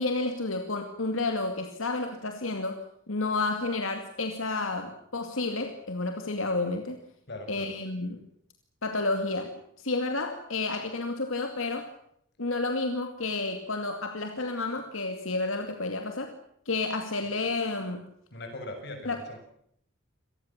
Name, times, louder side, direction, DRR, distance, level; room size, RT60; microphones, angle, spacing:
voice 1, 0.0-7.0 7.5-8.2 8.8-9.5 9.8-11.9 12.4-16.3 16.7-18.1 19.1-19.2, left 3 dB, 85° left, 6 dB, 2.4 m, -30 dB
voice 2, 7.3-7.7 18.3-19.4, left 1 dB, 55° left, 5 dB, 6.9 m, -40 dB
26.5 x 19.0 x 7.4 m, 0.71 s
head